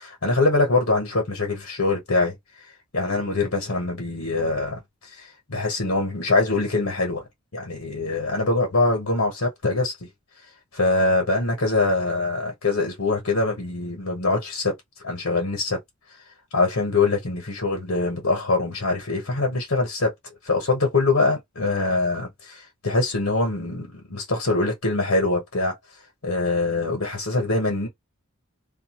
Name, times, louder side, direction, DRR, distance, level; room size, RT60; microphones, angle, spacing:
voice 1, 0.0-2.3 2.9-4.8 5.1-7.2 7.5-9.9 10.7-14.7 15.0-15.8 16.5-20.1 20.4-25.8 26.2-27.9, left 3 dB, 65° left, 1.1 m, -23 dB
2.5 x 2.3 x 2.9 m
head